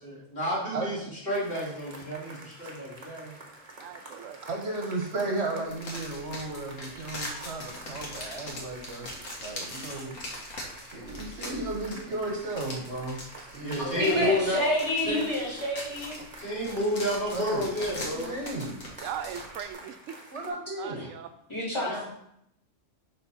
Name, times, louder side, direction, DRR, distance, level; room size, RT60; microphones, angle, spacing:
voice 1, 0.0-3.3 13.6-14.6 15.1-15.2 16.4-18.3, left 1 dB, 45° left, -7 dB, 3.1 m, -30 dB
sound 1, 1.3-20.5, right 2 dB, 30° right, 1.1 m, -48 dB
voice 2, 3.8-4.4 19.0-20.2 20.8-21.3, right 9 dB, 80° right, 8 dB, 0.9 m, -39 dB
voice 3, 4.5-9.1 9.4-10.2 10.9-14.3 17.3-17.7 17.9-18.8 20.3-21.1, right 2 dB, 60° right, 1 dB, 1.2 m, -34 dB
sound 2, 5.7-19.7, left 1 dB, 80° left, 1.7 m, -41 dB
voice 4, 13.9-16.2 20.9-21.1 21.5-22.1, equal, 20° left, -7 dB, 3.2 m, -28 dB
6.9 x 3.7 x 5.5 m, 0.77 s
omnidirectional pair, 1.3 m